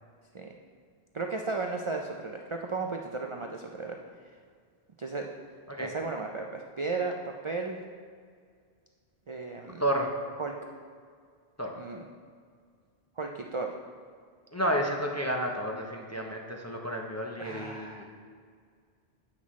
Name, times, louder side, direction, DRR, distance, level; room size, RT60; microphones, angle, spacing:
voice 1, 1.1-4.0 5.0-5.3 5.8-7.8 9.3-9.8 10.4-10.5 11.8-12.1 13.2-13.7 17.4-18.0, right 3 dB, 45° right, 2 dB, 0.4 m, -34 dB
voice 2, 9.8-10.1 11.6-11.7 14.5-18.0, equal, 20° left, 0 dB, 0.6 m, -31 dB
9.8 x 7.5 x 3.2 m, 2.1 s
omnidirectional pair, 1.1 m